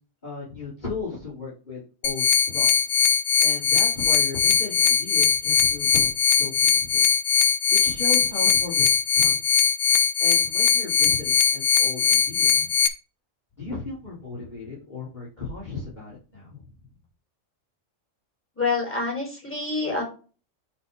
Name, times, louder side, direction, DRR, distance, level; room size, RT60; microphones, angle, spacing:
voice 1, 0.2-2.9 3.4-7.1 7.8-8.9 9.1-9.3 10.2-12.7 13.6-16.6, left 3 dB, 35° left, -7 dB, 3.3 m, -36 dB
sound 1, 2.0-12.9, left 7 dB, 50° left, 1.0 m, -20 dB
voice 2, 18.6-20.0, left 4 dB, 10° left, -2 dB, 4.5 m, -27 dB
9.2 x 4.6 x 3.7 m, 0.35 s
omnidirectional pair, 1.4 m